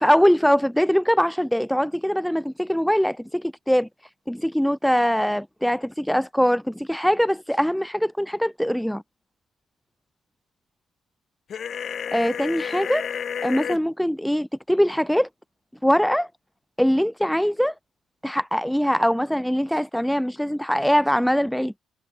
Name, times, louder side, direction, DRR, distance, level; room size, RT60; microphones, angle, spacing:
voice 1, 0.0-3.9 4.3-9.0 12.1-13.1 13.4-15.3 15.8-16.3 16.8-17.7 18.2-21.7, equal, ahead, 1.2 m, -22 dB
sound 1, 11.5-13.8, left 8 dB, 55° left, 3.2 m, -30 dB
cardioid pair, 90°, 0 cm